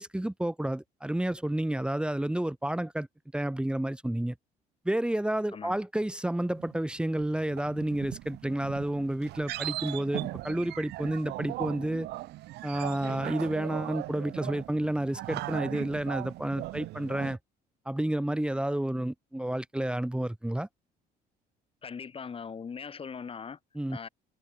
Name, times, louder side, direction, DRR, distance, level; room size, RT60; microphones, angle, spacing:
voice 1, 0.0-3.1 3.3-4.3 4.8-12.1 12.6-17.4 17.9-20.7 23.7-24.0, right 1 dB, 5° right, 2.7 m, -30 dB
sound 1, 6.6-17.4, right 17 dB, 75° right, 0.9 m, -39 dB
voice 2, 21.8-23.6 23.9-24.1, left 6 dB, 35° left, 3.5 m, -40 dB
cardioid pair, 110°, 17 cm